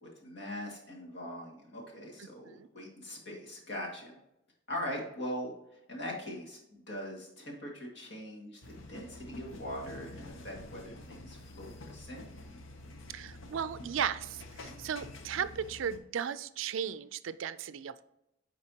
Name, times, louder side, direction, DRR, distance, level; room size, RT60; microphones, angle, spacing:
voice 1, 0.0-4.2 4.7-5.5 5.9-12.3, equal, 60° left, -2 dB, 2.1 m, -41 dB
sound 1, 8.6-16.0, left 2 dB, 85° left, 0.8 m, -48 dB
voice 2, 13.1-18.0, right 8 dB, 80° right, 15 dB, 0.4 m, -36 dB
9.6 x 4.1 x 2.8 m, 0.84 s
head